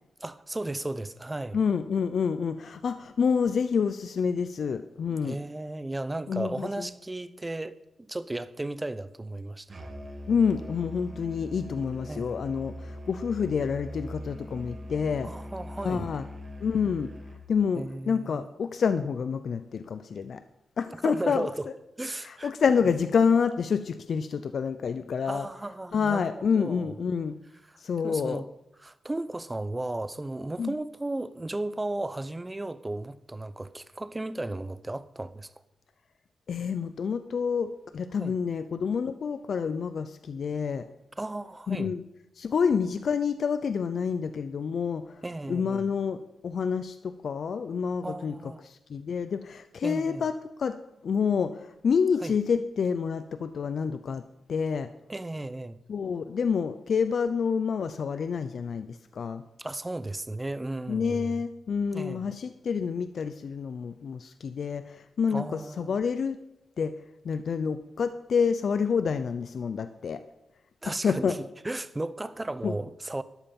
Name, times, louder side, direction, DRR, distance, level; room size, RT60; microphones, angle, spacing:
voice 1, 0.2-1.6 5.1-9.7 12.1-12.4 15.2-16.1 17.8-18.5 21.0-21.7 22.0-22.5 25.3-27.0 27.7-27.8 28.0-28.5 28.8-35.5 38.2-38.3 41.2-41.9 45.2-45.9 48.0-48.6 49.8-50.2 52.2-52.3 55.1-55.8 59.6-61.4 61.9-62.4 65.3-66.0 70.8-71.4 71.6-73.2, right 2 dB, 20° right, 0.8 m, -35 dB
voice 2, 1.5-5.4 6.3-6.9 10.3-15.3 15.8-16.3 16.6-17.1 17.5-20.4 20.8-21.5 22.2-25.5 25.9-27.4 27.8-28.4 30.6-30.7 36.5-40.9 41.7-42.0 42.4-45.2 45.5-46.2 46.4-50.3 50.6-50.8 51.0-54.2 54.5-54.9 55.9-59.4 60.9-66.4 66.8-66.9 67.2-70.2 70.9-71.4 72.6-72.7, left 6 dB, 65° left, 0.6 m, -28 dB
Musical instrument, 9.7-17.5, equal, 40° right, 2.4 m, -41 dB
13.0 x 11.0 x 5.4 m
cardioid pair, 90°, 0 cm